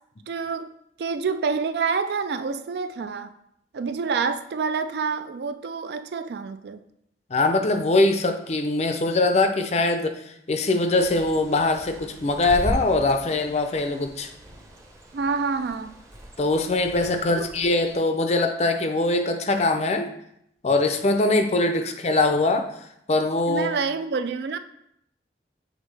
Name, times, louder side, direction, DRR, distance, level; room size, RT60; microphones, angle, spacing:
voice 1, 0.3-0.7 1.0-3.3 3.7-6.8 15.1-15.9 17.3-17.5 21.9-22.0 23.5-24.6, right 5 dB, 60° right, 11 dB, 0.3 m, -27 dB
voice 2, 7.3-14.3 16.4-20.1 20.6-22.7 23.1-23.7, left 2 dB, 35° left, 6 dB, 0.5 m, -22 dB
Bird, 10.9-17.9, equal, 15° right, 0.7 m, -38 dB
7.3 x 4.0 x 3.3 m, 0.76 s
head